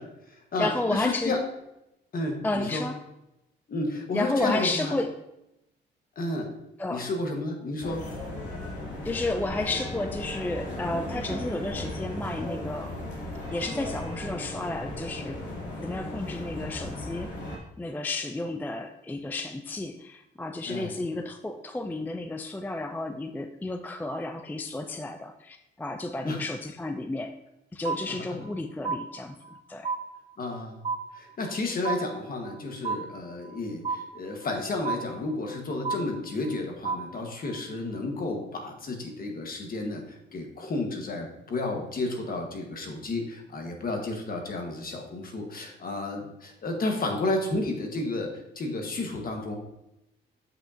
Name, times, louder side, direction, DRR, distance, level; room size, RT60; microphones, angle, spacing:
voice 1, 0.0-1.4 2.1-2.9 3.7-4.9 6.1-6.5 6.9-8.0 20.6-20.9 26.3-26.4 28.0-28.2 30.4-30.8 31.1-49.6, left 2 dB, 45° left, 2 dB, 1.5 m, -32 dB
voice 2, 0.6-1.4 2.4-3.0 4.1-5.2 6.8-7.1 9.0-13.0 13.5-15.4 15.8-17.3 17.8-27.3 27.7-29.4 29.7-29.9, left 2 dB, 10° left, 8 dB, 0.4 m, -32 dB
sound 1, 7.8-17.6, left 1 dB, 65° left, 2.7 m, -36 dB
sound 2, 27.8-28.6 28.8-29.6 29.8-30.6 30.8-31.6 31.8-32.6 32.8-33.6 33.8-34.6 34.8-35.6 35.8-36.6 36.8-37.6, right 5 dB, 35° right, 0.9 m, -32 dB
7.9 x 5.9 x 2.8 m, 0.89 s
cardioid pair, 90°, 20 cm